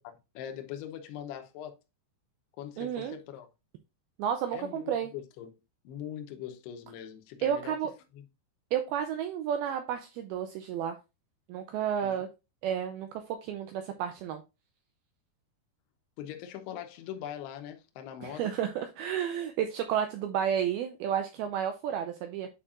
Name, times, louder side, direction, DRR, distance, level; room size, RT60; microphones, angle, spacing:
voice 1, 0.4-1.8 2.6-3.5 4.5-5.5 5.8-7.8 8.1-8.2 12.0-12.2 16.2-18.6, left 10 dB, 75° left, 2.7 m, -41 dB
voice 2, 2.8-3.2 4.2-5.1 7.4-7.9 8.7-11.0 11.5-12.3 12.6-14.4 18.2-22.5, right 9 dB, 85° right, 2.2 m, -31 dB
8.7 x 4.7 x 2.4 m
omnidirectional pair, 5.1 m